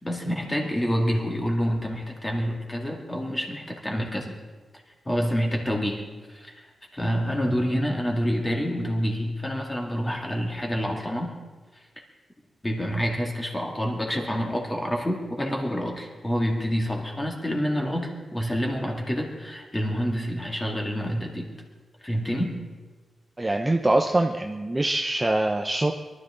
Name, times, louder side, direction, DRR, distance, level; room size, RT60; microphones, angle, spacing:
voice 1, 0.0-4.3 5.1-6.7 6.9-11.3 12.6-21.5 22.0-22.6, equal, 15° left, 0 dB, 2.2 m, -27 dB
voice 2, 23.4-25.9, right 2 dB, 15° right, 3 dB, 0.6 m, -23 dB
23.5 x 12.5 x 3.8 m, 1.3 s
wide cardioid pair, 140°, 0 cm